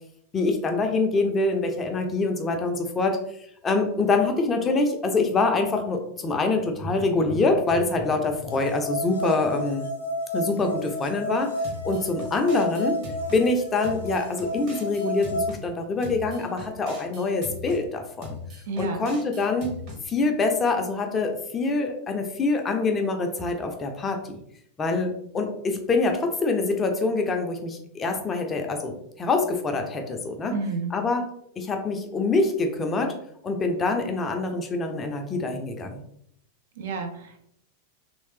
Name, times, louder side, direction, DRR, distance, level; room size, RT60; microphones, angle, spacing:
voice 1, 0.3-3.2 3.6-9.9 10.3-11.5 11.8-13.0 13.3-18.4 18.8-19.7 20.1-24.4 24.8-30.5 30.9-31.3 31.6-33.2 33.4-36.0, left 3 dB, 20° left, 4 dB, 0.5 m, -25 dB
sound 1, 8.5-15.5, equal, 75° left, 0.6 m, -31 dB
sound 2, 11.6-13.4 13.8-15.6 16.0-17.8 18.2-20.0, left 3 dB, 40° right, 1.1 m, -39 dB
voice 2, 18.7-19.0 30.5-30.9 36.8-37.4, right 3 dB, 55° right, 4 dB, 0.5 m, -30 dB
3.1 x 2.7 x 3.2 m, 0.72 s
figure-of-eight pair, 90°, 0 cm